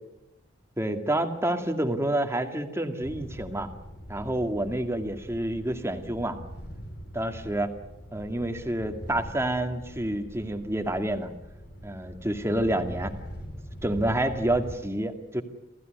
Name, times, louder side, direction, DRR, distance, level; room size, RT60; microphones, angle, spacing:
voice 1, 0.8-3.7 4.1-6.4 7.1-7.7 8.1-11.3 11.8-13.1 13.8-15.4, right 1 dB, 15° right, 6 dB, 2.1 m, -28 dB
sound 1, 3.0-14.8, equal, 60° left, 5.6 m, -42 dB
28.0 x 16.0 x 9.4 m, 0.93 s
head